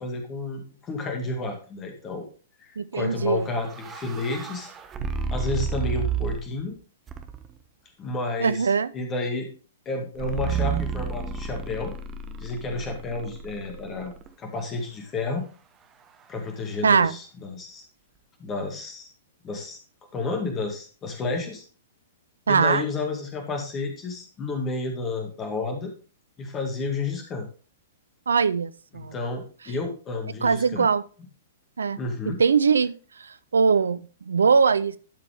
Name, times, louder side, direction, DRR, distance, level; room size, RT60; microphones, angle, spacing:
voice 1, 0.0-2.3 2.6-4.7 5.3-6.8 8.0-9.5 9.9-11.9 12.4-14.1 14.4-15.5 16.3-17.8 18.4-19.1 19.4-19.8 20.1-21.6 22.5-25.9 26.4-27.5 29.0-30.9 32.0-32.4, left 3 dB, 20° left, 2.1 m, -31 dB
voice 2, 2.8-3.4 8.4-8.9 16.8-17.2 22.5-22.8 28.3-29.1 30.4-31.0 31.8-32.0 32.3-35.0, right 5 dB, 70° right, 0.5 m, -22 dB
sound 1, 3.3-6.6 7.1-7.6 10.2-14.3, right 6 dB, 20° right, 0.8 m, -31 dB
12.5 x 4.9 x 3.5 m
figure-of-eight pair, 110°, 0 cm